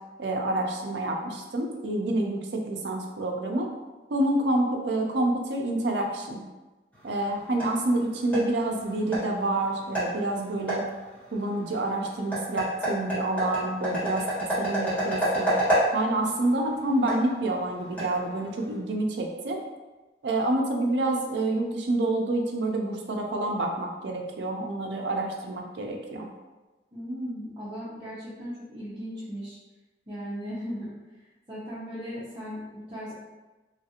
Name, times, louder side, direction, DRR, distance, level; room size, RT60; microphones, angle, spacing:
voice 1, 0.2-3.7 4.1-6.4 7.0-10.8 11.3-14.2 14.5-15.5 15.9-19.6 20.2-26.3, right 2 dB, 70° right, 1 dB, 0.5 m, -28 dB
sound 1, 6.9-18.8, right 1 dB, 10° left, 1.3 m, -31 dB
voice 2, 26.9-29.6 30.1-30.9 31.5-33.1, equal, 25° right, -11 dB, 0.6 m, -37 dB
3.1 x 2.4 x 2.8 m, 1.1 s
head